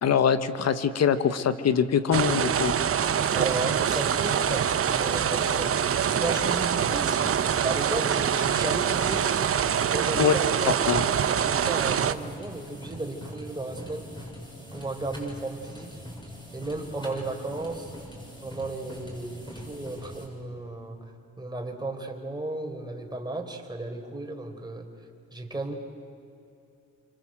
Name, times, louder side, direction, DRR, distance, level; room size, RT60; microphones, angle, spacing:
voice 1, 0.0-2.7 10.2-10.3 10.7-11.0, left 7 dB, 60° left, 11 dB, 1.7 m, -23 dB
sound 1, 2.1-12.1, right 8 dB, 45° right, 1.1 m, -25 dB
sound 2, 3.0-20.3, equal, 15° left, 7.9 m, -43 dB
voice 2, 3.3-5.8 6.2-7.2 7.6-9.2 9.9-10.9 11.4-14.1 14.7-16.0 16.5-17.9 18.4-21.0 21.4-24.9 25.3-25.8, right 2 dB, 15° right, 2 dB, 4.5 m, -34 dB
28.5 x 25.5 x 7.9 m, 2.7 s
cardioid pair, 90°, 30 cm